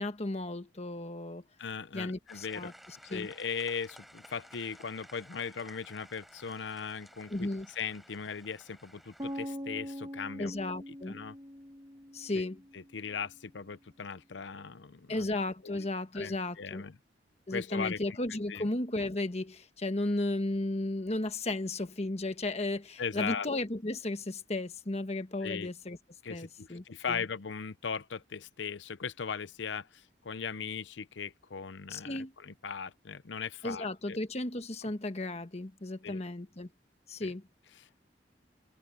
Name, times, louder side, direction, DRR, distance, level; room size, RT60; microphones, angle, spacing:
voice 1, 0.0-1.4 1.9-3.3 7.3-7.7 10.4-11.2 12.1-12.6 15.1-16.8 17.5-26.0 26.3-27.2 31.9-32.3 33.6-36.7 37.1-37.5, left 2 dB, 35° left, 1.3 m, -34 dB
voice 2, 1.6-2.7 3.0-7.5 7.8-10.5 11.1-11.4 12.3-12.5 12.7-15.3 15.6-15.9 16.1-17.0 17.5-18.0 18.5-18.7 23.0-23.5 25.4-25.7 26.2-34.2 36.0-36.2 37.2-37.3 37.8-37.9, left 6 dB, 85° left, 0.7 m, -38 dB
sound 1, 2.3-9.5, equal, ahead, 5.0 m, -55 dB
sound 2, 9.2-13.1, equal, 25° right, 1.5 m, -42 dB
head